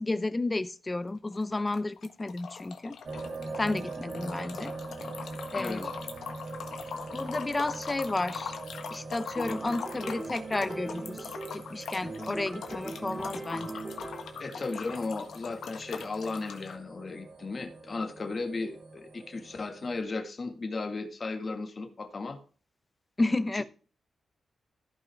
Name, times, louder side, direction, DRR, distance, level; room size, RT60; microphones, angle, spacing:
voice 1, 0.0-3.0 3.6-4.7 5.5-5.9 7.1-8.5 8.9-11.2 11.5-13.8 23.2-23.6, left 2 dB, 20° left, 0.7 m, -32 dB
sound 1, 1.1-1.4 1.7-16.7, left 6 dB, 85° left, 1.5 m, -42 dB
sound 2, 3.0-20.0, right 3 dB, 60° right, 3.7 m, -43 dB
voice 2, 5.6-5.9 14.4-22.4 23.5-23.6, left 3 dB, 40° left, 1.8 m, -35 dB
sound 3, 9.4-11.7 12.0-14.5, right 2 dB, 15° right, 3.1 m, -40 dB
14.5 x 5.7 x 3.5 m
cardioid pair, 100°, 0 cm